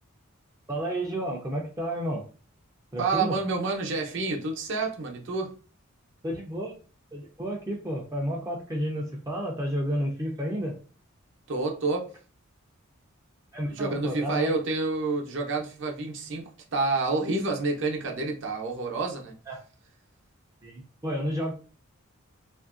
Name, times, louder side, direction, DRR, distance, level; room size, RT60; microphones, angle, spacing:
voice 1, 0.7-2.3 2.9-3.4 6.2-6.8 7.1-10.8 13.5-14.5 19.5-19.6 20.6-21.5, equal, 15° right, 0.4 m, -31 dB
voice 2, 3.0-5.5 11.5-12.1 13.7-19.3, right 3 dB, 60° right, 0.7 m, -28 dB
2.9 x 2.5 x 2.4 m
head